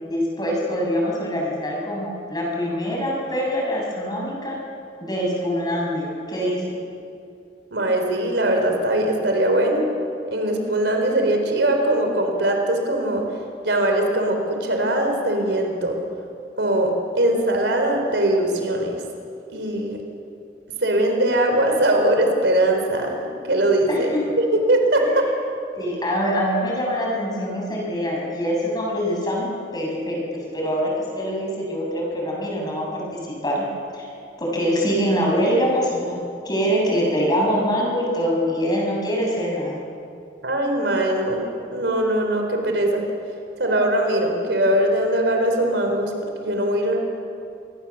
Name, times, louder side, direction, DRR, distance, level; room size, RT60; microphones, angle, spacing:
voice 1, 0.0-4.6 5.0-6.7 23.9-24.2 25.0-25.1 25.7-29.5 29.7-30.2 30.5-33.0 33.4-33.6 33.9-34.1 34.4-36.1 36.5-39.8, equal, 20° left, -2 dB, 7.1 m, -24 dB
voice 2, 7.7-9.8 10.3-13.2 13.6-16.0 16.6-16.9 17.2-19.0 19.5-20.0 20.8-24.1 24.4-25.3 40.4-41.4 41.7-43.0 43.6-46.1 46.4-47.0, right 1 dB, 75° right, 3 dB, 4.0 m, -21 dB
26.5 x 20.0 x 7.3 m, 2.5 s
head